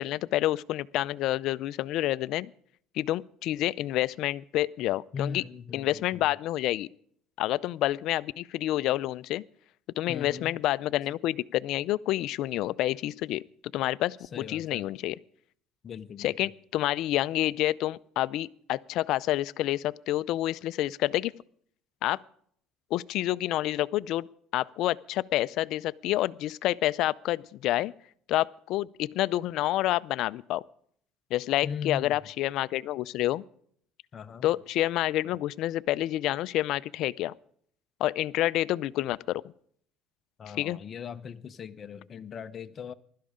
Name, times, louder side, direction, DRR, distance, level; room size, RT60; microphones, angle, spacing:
voice 1, 0.0-2.5 2.9-5.4 5.7-6.9 7.4-9.4 10.0-13.4 13.7-15.2 16.2-21.3 22.0-22.2 22.9-24.3 24.5-27.9 28.3-30.6 31.3-33.4 34.4-37.3 38.0-39.4 40.6-40.8, left 15 dB, 65° left, 0.5 m, -28 dB
voice 2, 5.1-5.9 6.1-6.3 10.1-10.5 14.3-14.8 15.8-16.3 31.6-32.2 34.1-34.5 40.4-42.9, left 6 dB, 35° left, 0.9 m, -39 dB
16.0 x 12.5 x 5.0 m
cardioid pair, 125°, 0 cm